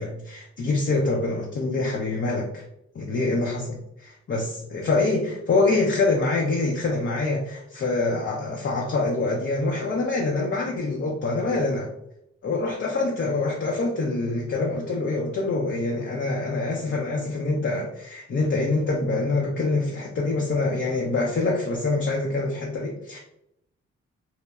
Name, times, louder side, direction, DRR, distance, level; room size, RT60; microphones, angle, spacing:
voice 1, 0.0-2.6 2.9-11.9 12.4-23.2, left 3 dB, 40° left, -1 dB, 0.5 m, -25 dB
3.0 x 2.1 x 2.3 m, 0.79 s
cardioid pair, 65°, 29 cm